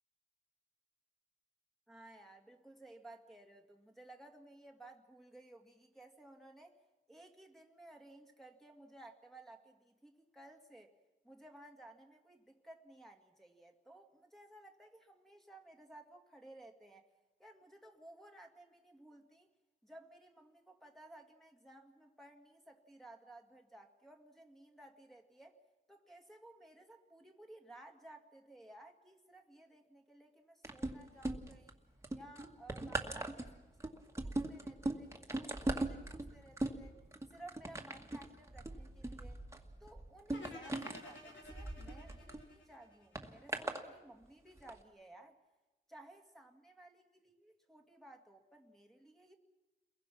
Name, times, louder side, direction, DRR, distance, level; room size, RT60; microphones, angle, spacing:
voice 1, 1.9-6.8 7.1-10.9 11.2-17.1 17.4-19.5 19.8-25.6 25.9-31.8 32.1-37.0 37.3-39.4 39.8-45.4 45.9-49.3, right 1 dB, ahead, 1 dB, 2.3 m, -57 dB
sound 1, 30.6-31.7 32.0-42.4 43.2-43.8 44.6-44.7, right 2 dB, 15° right, 2.0 m, -40 dB
sound 2, 40.3-43.5, left 2 dB, 85° left, 3.9 m, -53 dB
30.0 x 22.0 x 6.1 m, 1.1 s
wide cardioid pair, 105°, 19 cm